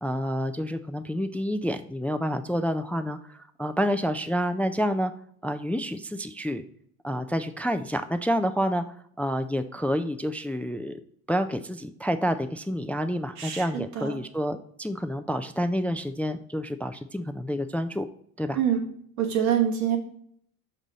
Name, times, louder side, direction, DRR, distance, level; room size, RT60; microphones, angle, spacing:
voice 1, 0.0-5.1 5.4-6.6 7.0-11.0 11.3-18.1 18.4-18.6, equal, 5° left, 9 dB, 0.3 m, -28 dB
voice 2, 13.4-14.1 18.5-18.8 19.2-20.0, right 9 dB, 85° right, 2 dB, 1.5 m, -25 dB
6.0 x 5.4 x 3.9 m, 0.65 s
hypercardioid pair, 70°, 40 cm